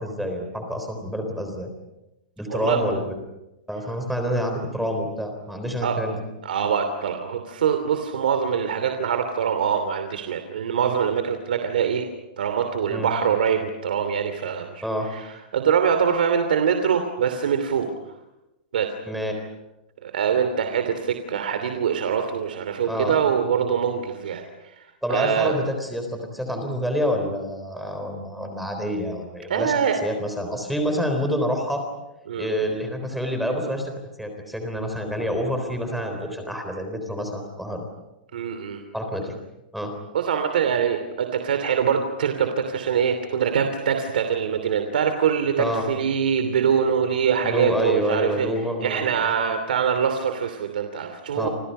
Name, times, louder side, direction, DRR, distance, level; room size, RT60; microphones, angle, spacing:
voice 1, 0.0-1.7 2.4-3.1 3.7-6.2 12.9-13.1 14.8-15.3 19.1-19.3 22.9-23.2 25.0-31.8 32.4-33.9 34.2-37.8 38.9-39.4 39.7-39.9 45.6-45.9 47.4-49.3 51.3-51.5, equal, ahead, 4 dB, 3.8 m, -27 dB
voice 2, 6.4-12.1 12.4-17.9 18.7-18.9 20.0-25.6 29.5-30.0 32.3-32.5 38.3-38.8 40.1-48.5 48.8-51.5, right 7 dB, 80° right, 7 dB, 2.9 m, -24 dB
29.5 x 27.5 x 5.6 m, 0.96 s
supercardioid pair, 175°, 5 cm